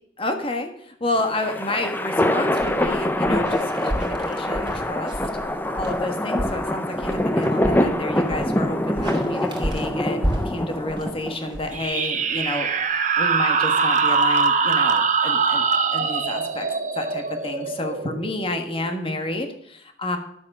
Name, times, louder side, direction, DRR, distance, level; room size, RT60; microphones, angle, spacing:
voice 1, 0.2-5.1 5.8-12.7 13.2-15.6 15.9-16.7 16.9-20.2, left 1 dB, 30° left, 6 dB, 1.5 m, -30 dB
sound 1, 1.1-11.6, left 1 dB, 10° left, 0.7 m, -24 dB
sound 2, 2.5-12.4, equal, 30° right, 2.5 m, -33 dB
sound 3, 11.7-19.0, right 5 dB, 45° right, 0.9 m, -22 dB
11.5 x 7.4 x 6.0 m, 0.69 s
head